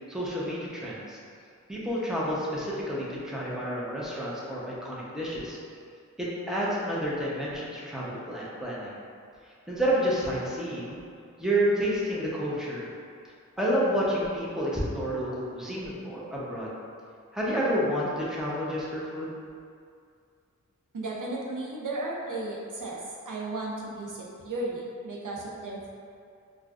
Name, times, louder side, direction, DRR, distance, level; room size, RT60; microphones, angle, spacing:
voice 1, 0.1-1.2 1.7-5.6 6.2-8.9 9.7-11.0 11.4-12.9 13.6-16.7 17.3-19.3, equal, ahead, -7 dB, 0.8 m, -29 dB
voice 2, 20.9-23.0 23.3-25.9, right 2 dB, 90° right, -3 dB, 0.6 m, -34 dB
4.4 x 2.3 x 2.5 m, 2.3 s
wide cardioid pair, 40°, 30 cm